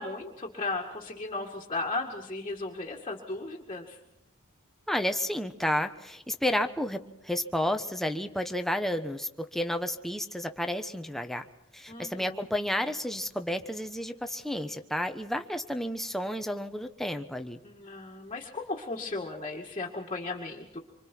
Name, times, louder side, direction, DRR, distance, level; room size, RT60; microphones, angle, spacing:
voice 1, 0.0-4.0 11.9-12.4 17.6-20.8, left 3 dB, 25° left, 0 dB, 2.1 m, -36 dB
voice 2, 4.9-11.5 11.7-17.6, left 1 dB, ahead, 6 dB, 1.1 m, -31 dB
26.0 x 25.5 x 4.6 m, 0.88 s
head